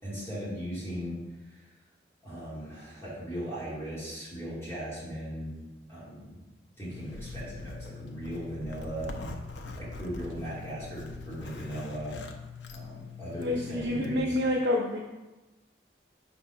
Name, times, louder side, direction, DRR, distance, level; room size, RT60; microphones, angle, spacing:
voice 1, 0.0-1.7 2.2-5.5 5.9-6.4 6.8-9.1 9.8-12.2 12.7-14.4, equal, 15° left, -10 dB, 2.5 m, -38 dB
Zipper (clothing), 6.9-14.2, left 4 dB, 90° left, 0.7 m, -42 dB
voice 2, 13.4-15.0, left 1 dB, 70° right, -1 dB, 0.7 m, -28 dB
5.9 x 4.2 x 5.5 m, 1.1 s
head